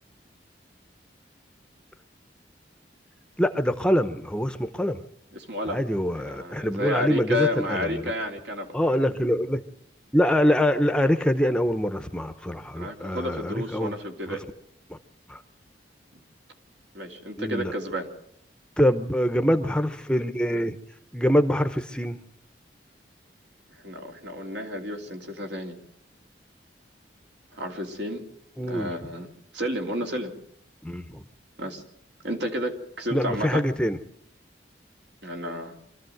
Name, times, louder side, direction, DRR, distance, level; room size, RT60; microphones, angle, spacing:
voice 1, 3.4-5.0 5.7-8.0 8.7-9.6 10.1-13.9 14.3-14.4 14.9-15.0 15.3-15.4 17.4-17.7 18.8-20.8 21.1-22.2 28.6-28.9 30.8-31.2 33.1-34.0, equal, 5° left, 9 dB, 0.8 m, -24 dB
voice 2, 5.3-5.8 6.2-8.7 12.8-14.5 16.9-18.1 23.8-25.8 27.5-28.3 28.6-29.3 29.5-30.3 31.6-31.8 32.2-33.6 35.2-35.8, left 1 dB, 70° right, 3 dB, 3.0 m, -31 dB
25.5 x 14.0 x 7.9 m, 0.73 s
head